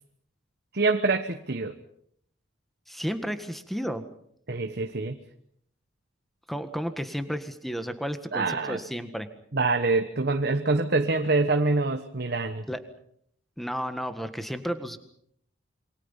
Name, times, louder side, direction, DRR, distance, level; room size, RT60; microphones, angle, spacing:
voice 1, 0.7-1.7 4.5-5.2 8.3-8.8 9.5-12.6, right 3 dB, 55° right, 6 dB, 1.2 m, -25 dB
voice 2, 2.9-4.0 6.5-9.3 12.7-12.8 13.6-15.0, equal, ahead, 9 dB, 1.7 m, -32 dB
27.5 x 24.5 x 5.7 m, 0.68 s
head